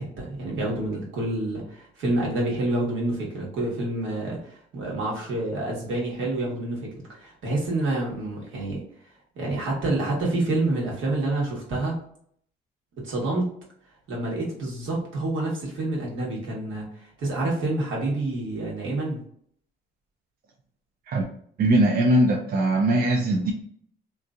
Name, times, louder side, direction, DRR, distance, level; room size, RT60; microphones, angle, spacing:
voice 1, 0.0-8.8 9.3-12.0 13.0-13.5 14.1-19.2, right 2 dB, 75° right, -3 dB, 1.4 m, -28 dB
voice 2, 21.6-23.5, right 1 dB, 50° right, 0 dB, 0.5 m, -20 dB
3.0 x 2.6 x 2.4 m, 0.63 s
cardioid pair, 90°, 20 cm